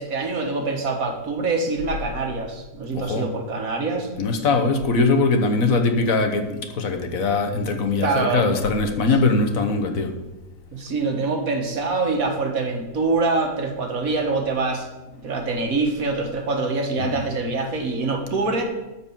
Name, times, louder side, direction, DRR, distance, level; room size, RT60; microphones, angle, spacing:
voice 1, 0.0-4.1 8.0-8.5 10.7-14.9 15.2-18.6, right 3 dB, 65° right, 1.8 m, -25 dB
voice 2, 2.9-3.3 4.2-10.2 15.2-15.4 17.0-17.2, left 3 dB, 65° left, 1.4 m, -21 dB
12.5 x 4.5 x 7.3 m
omnidirectional pair, 1.6 m